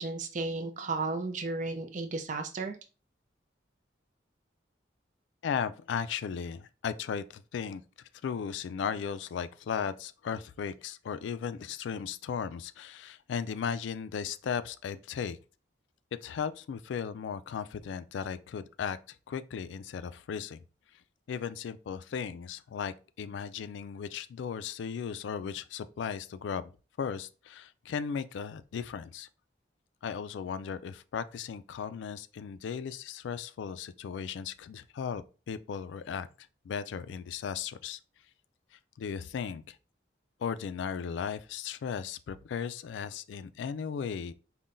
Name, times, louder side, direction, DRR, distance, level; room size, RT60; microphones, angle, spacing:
voice 1, 0.0-2.8, right 3 dB, 40° right, 0.5 m, -34 dB
voice 2, 5.4-7.8 8.2-15.4 16.2-20.6 21.3-26.7 27.0-29.3 30.0-36.3 36.7-38.0 39.0-39.8 40.4-44.3, left 7 dB, 75° left, 0.3 m, -36 dB
5.5 x 2.2 x 2.5 m
head